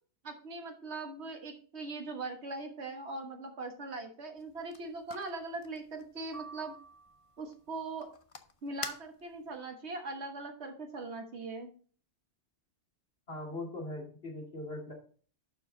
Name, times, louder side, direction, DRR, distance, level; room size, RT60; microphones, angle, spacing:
voice 1, 0.2-6.7 7.4-8.1 8.6-11.7, right 3 dB, 80° right, 4 dB, 1.7 m, -41 dB
sound 1, 4.4-9.6, left 4 dB, 35° left, 0.7 m, -49 dB
sound 2, 6.3-7.6, right 4 dB, 35° right, 0.9 m, -50 dB
voice 2, 13.3-14.9, left 2 dB, 65° left, -2 dB, 2.7 m, -40 dB
11.5 x 4.7 x 3.9 m, 0.44 s
omnidirectional pair, 1.1 m